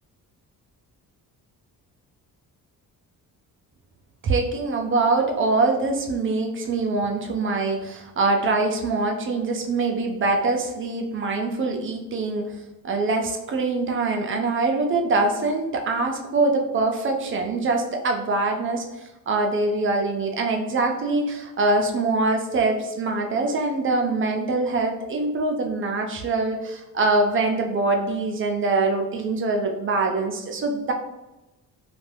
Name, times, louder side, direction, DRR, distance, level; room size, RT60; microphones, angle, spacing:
voice 1, 4.2-12.5 12.8-18.8 19.3-30.9, right 3 dB, 35° right, 2 dB, 0.4 m, -24 dB
2.4 x 2.2 x 3.3 m, 1.0 s
cardioid pair, 115°, 35 cm